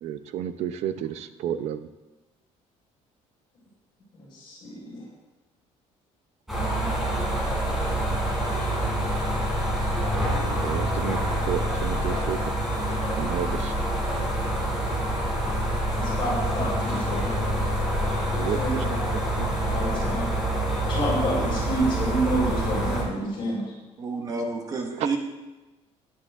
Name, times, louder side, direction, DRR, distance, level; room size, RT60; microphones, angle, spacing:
voice 1, 0.0-1.9 10.6-11.2 11.5-12.4 13.2-13.7 18.3-18.8 19.4-19.5, right 10 dB, 60° right, 11 dB, 0.8 m, -31 dB
sound 1, 6.5-23.0, right 1 dB, ahead, 3.8 m, -26 dB
voice 2, 16.0-17.2 18.5-19.0 19.6-20.3 20.9-23.6, right 1 dB, 40° left, -4 dB, 5.2 m, -28 dB
voice 3, 24.0-25.2, right 3 dB, 30° right, 3 dB, 1.4 m, -29 dB
16.5 x 10.0 x 3.7 m, 1.1 s
cardioid pair, 170°, 12 cm